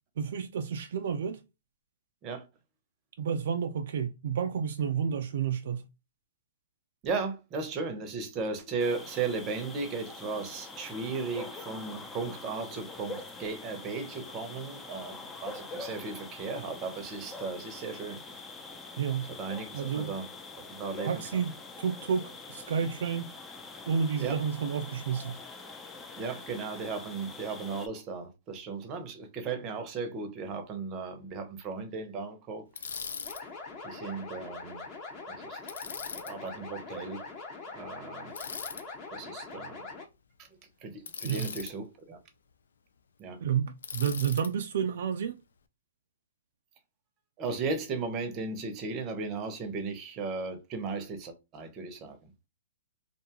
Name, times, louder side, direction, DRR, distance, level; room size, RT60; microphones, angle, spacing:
voice 1, 0.2-1.4 3.2-5.8 19.0-19.3 19.7-20.1 21.1-23.3 23.9-25.4 41.2-41.5 43.4-45.4, right 7 dB, 65° right, 0.3 m, -30 dB
voice 2, 7.0-18.2 19.4-20.3 20.6-21.4 24.2-24.4 26.2-32.7 33.8-34.8 35.3-35.6 36.1-37.3 37.7-38.3 39.1-39.9 40.4-40.5 40.8-42.2 43.2-43.4 47.4-52.3, right 4 dB, 25° right, 0.7 m, -36 dB
sound 1, 8.8-27.9, left 3 dB, 10° left, 0.4 m, -44 dB
Bicycle, 32.7-33.4 35.7-36.3 38.3-38.8 41.1-41.7 43.8-44.5, left 6 dB, 85° left, 0.4 m, -39 dB
sound 2, 33.2-40.0, left 3 dB, 25° left, 0.9 m, -43 dB
2.5 x 2.3 x 2.8 m
hypercardioid pair, 145°, 0 cm